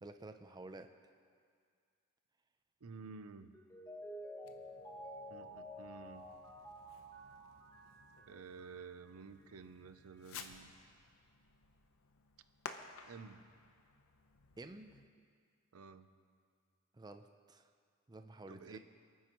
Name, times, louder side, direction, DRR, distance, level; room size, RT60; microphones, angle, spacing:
voice 1, 0.0-0.9 14.6-15.0 16.9-17.7 18.1-18.8, right 2 dB, 20° right, 7 dB, 0.5 m, -51 dB
voice 2, 2.8-3.6 5.3-6.3 8.3-10.7 13.1-13.5 15.7-16.1 18.5-18.8, right 5 dB, 80° right, 11 dB, 0.6 m, -52 dB
Mallet percussion, 3.5-9.1 9.4-9.5, equal, 15° left, 1.3 m, -51 dB
Fireworks, 4.4-15.1, left 5 dB, 70° left, 0.8 m, -56 dB
27.5 x 9.4 x 3.0 m, 2.2 s
head